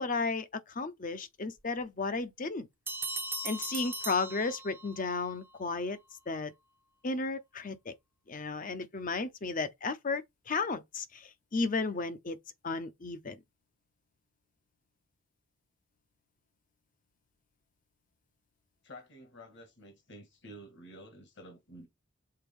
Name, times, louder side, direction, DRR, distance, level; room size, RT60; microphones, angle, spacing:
voice 1, 0.0-2.7 3.4-6.0 6.3-6.5 7.0-7.9 8.3-12.4 12.6-13.4, left 3 dB, 40° left, 0.7 m, -34 dB
sound 1, 2.9-5.1, right 2 dB, 10° right, 0.6 m, -38 dB
voice 2, 18.8-21.9, equal, 60° left, 1.7 m, -50 dB
6.6 x 4.1 x 3.5 m
head